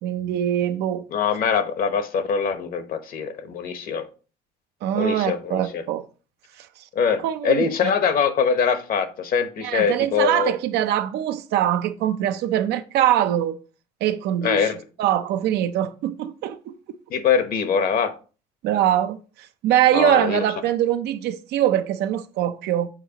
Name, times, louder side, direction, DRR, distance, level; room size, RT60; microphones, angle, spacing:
voice 1, 0.0-1.0 4.8-6.0 6.6-6.7 7.2-7.9 9.6-13.6 14.0-14.7 15.0-16.7 18.6-19.2 19.6-22.9, right 11 dB, 80° right, 0.6 m, -23 dB
voice 2, 1.1-4.1 4.9-5.8 6.9-10.5 14.4-14.8 17.1-18.1 19.9-20.4, left 6 dB, 60° left, 1.0 m, -23 dB
7.4 x 4.6 x 2.8 m
cardioid pair, 110°, 17 cm